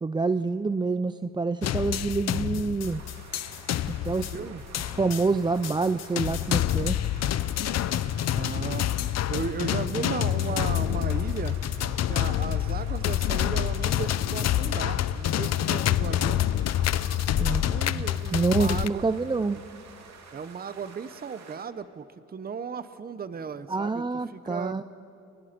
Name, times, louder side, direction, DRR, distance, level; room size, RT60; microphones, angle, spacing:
voice 1, 0.0-3.0 4.0-4.5 4.8-7.0 17.4-18.0 18.3-19.6 23.7-24.8, right 4 dB, 15° right, 13 dB, 0.5 m, -27 dB
sound 1, 1.6-18.9, left 11 dB, 60° left, 0.7 m, -27 dB
sound 2, 2.8-21.7, right 5 dB, 60° right, 2.8 m, -50 dB
voice 2, 4.1-4.6 8.3-8.9 9.3-11.6 12.0-16.4 17.4-19.0 20.3-24.8, right 6 dB, 30° right, 13 dB, 0.9 m, -36 dB
29.5 x 29.0 x 5.2 m, 2.7 s
cardioid pair, 90°, 30 cm